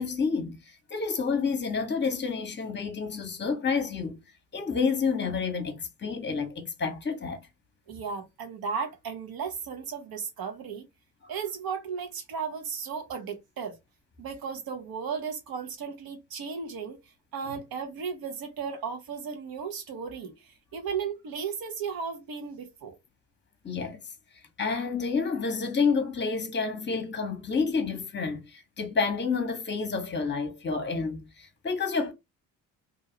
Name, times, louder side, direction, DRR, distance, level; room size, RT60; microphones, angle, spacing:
voice 1, 0.0-4.2 4.5-7.4 23.6-24.0 24.6-32.1, left 5 dB, 25° left, 1.0 m, -29 dB
voice 2, 7.9-10.9 11.3-13.8 14.2-17.0 17.3-23.0, right 6 dB, 55° right, 1.0 m, -35 dB
2.7 x 2.3 x 2.8 m
hypercardioid pair, 55°, 42 cm